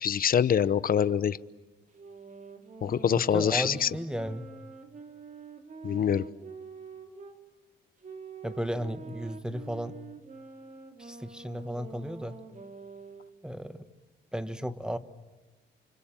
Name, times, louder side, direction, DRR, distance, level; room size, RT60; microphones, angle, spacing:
voice 1, 0.0-1.4 2.8-3.9 5.8-6.2, left 8 dB, 45° left, 16 dB, 0.9 m, -25 dB
sound 1, 1.9-7.4 8.0-13.4, right 4 dB, 40° right, 2.8 m, -46 dB
voice 2, 3.2-4.5 8.4-10.0 11.0-12.4 13.4-13.9 14.3-15.0, equal, 5° right, 11 dB, 1.4 m, -34 dB
29.0 x 25.5 x 7.6 m, 1.1 s
cardioid pair, 90°, 20 cm